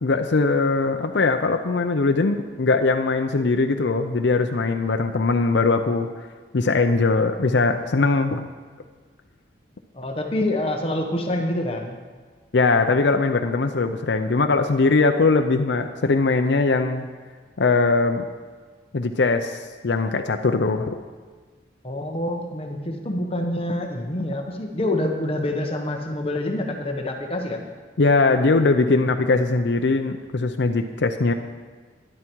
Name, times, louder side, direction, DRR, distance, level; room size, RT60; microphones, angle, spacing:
voice 1, 0.0-6.3 6.5-8.4 12.5-17.1 17.6-18.2 18.9-21.0 28.0-31.3, left 3 dB, 70° left, 5 dB, 0.6 m, -21 dB
voice 2, 9.9-12.0 21.8-27.6, left 1 dB, 30° left, 3 dB, 1.1 m, -26 dB
12.5 x 11.0 x 4.6 m, 1.5 s
head